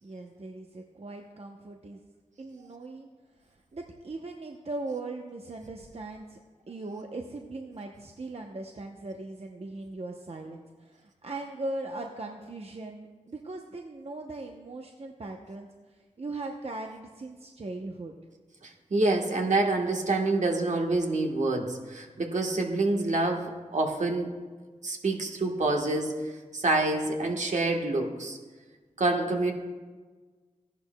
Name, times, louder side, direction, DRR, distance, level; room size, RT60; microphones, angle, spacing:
voice 1, 0.0-2.0 2.4-3.1 3.4-6.4 6.7-18.1, right 2 dB, 55° right, 2 dB, 0.8 m, -39 dB
voice 2, 18.6-24.3 24.8-26.2 26.5-28.4 29.0-29.5, right 2 dB, 70° right, 1 dB, 1.3 m, -27 dB
14.5 x 11.0 x 2.2 m, 1.4 s
wide cardioid pair, 55°, 13 cm